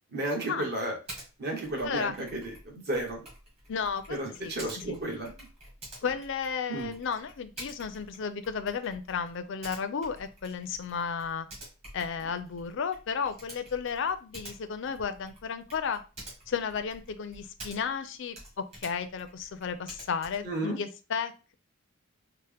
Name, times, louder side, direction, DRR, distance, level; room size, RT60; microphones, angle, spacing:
voice 1, 0.1-1.0 1.4-3.3 4.1-5.5 6.7-6.9 20.4-20.8, right 1 dB, 45° right, -1 dB, 1.2 m, -33 dB
Typing, 1.1-1.3 1.6-18.1 18.3-20.5, right 1 dB, 30° right, 1.6 m, -49 dB
voice 2, 3.7-5.0 6.0-11.5 11.9-16.0 16.5-21.5, left 6 dB, 55° left, 10 dB, 0.4 m, -33 dB
4.3 x 2.1 x 3.3 m, 0.32 s
head